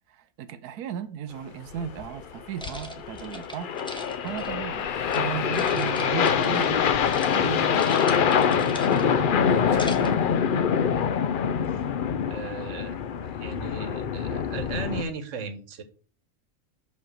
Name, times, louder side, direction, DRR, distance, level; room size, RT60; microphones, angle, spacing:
voice 1, 0.1-3.7 4.2-10.3 11.7-11.8, right 9 dB, 90° right, 1.1 m, -36 dB
sound 1, 1.7-15.0, left 7 dB, 80° left, 0.4 m, -25 dB
sound 2, 2.6-5.2 5.5-6.8 7.0-7.4 7.6-9.2 9.6-10.2, equal, 5° left, 0.8 m, -40 dB
voice 2, 12.3-15.8, right 5 dB, 55° right, 1.3 m, -37 dB
5.5 x 5.3 x 6.2 m
omnidirectional pair, 1.6 m